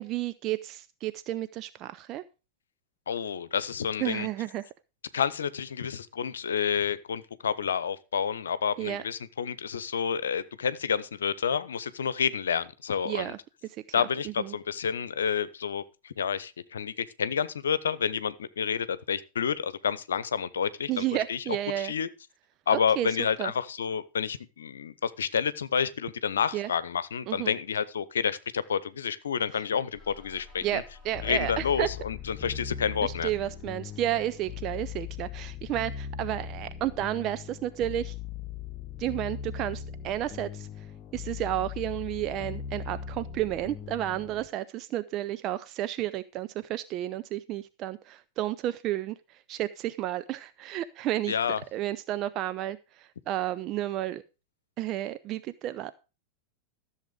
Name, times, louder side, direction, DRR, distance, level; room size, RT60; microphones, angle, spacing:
voice 1, 0.0-2.2 4.0-4.6 8.8-9.0 13.1-13.4 14.4-14.5 20.9-21.9 23.0-23.1 23.4-23.5 26.5-26.7 27.3-27.5 30.6-31.9 33.0-38.1 39.0-40.7 41.1-51.4 51.7-54.2 54.8-55.9, right 13 dB, 35° right, 12 dB, 0.6 m, -32 dB
voice 2, 3.1-4.3 5.1-13.3 13.9-22.1 22.7-30.8 31.2-33.3 51.3-51.6, left 7 dB, 65° left, 16 dB, 1.0 m, -29 dB
sound 1, 29.9-35.4, left 4 dB, 5° right, 6.6 m, -54 dB
sound 2, 31.1-44.5, left 8 dB, 30° left, 1.4 m, -39 dB
14.0 x 7.4 x 5.0 m, 0.30 s
figure-of-eight pair, 90°, 0 cm